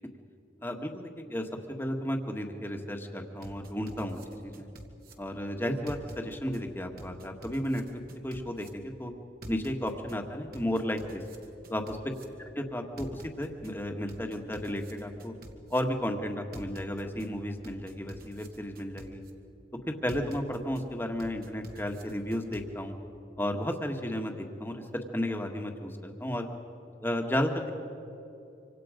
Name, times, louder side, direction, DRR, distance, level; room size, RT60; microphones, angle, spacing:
voice 1, 0.6-4.7 5.2-7.8 8.2-9.1 9.5-11.2 11.7-12.0 12.7-15.3 15.7-19.2 19.9-22.9 23.4-24.8 25.1-26.5 27.0-27.7, equal, 10° left, 3 dB, 1.7 m, -33 dB
sound 1, 3.4-5.1 5.9-6.6 7.0-8.7 9.4-10.2 10.5-12.2 13.0-13.7 14.1-15.8 16.5-17.3 17.6-19.3 20.1-20.8 21.2-22.6, equal, 50° right, 2.2 m, -46 dB
26.0 x 25.5 x 5.2 m, 2.8 s
head